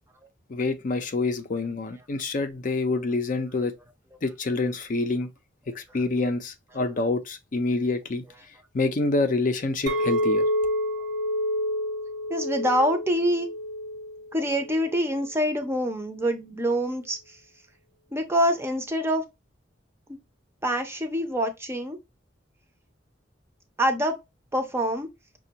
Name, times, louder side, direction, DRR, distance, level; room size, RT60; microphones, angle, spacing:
voice 1, 0.5-3.7 4.2-5.3 5.7-8.2 8.7-10.4, left 3 dB, 45° left, 0.5 m, -27 dB
Chink clink, 9.9-15.1, equal, 85° right, 1.0 m, -28 dB
voice 2, 12.3-13.5 14.3-17.4 18.1-19.2 20.1-20.2 20.6-22.0 23.8-24.2 24.5-25.1, equal, 15° right, 0.5 m, -25 dB
5.8 x 2.3 x 2.8 m
head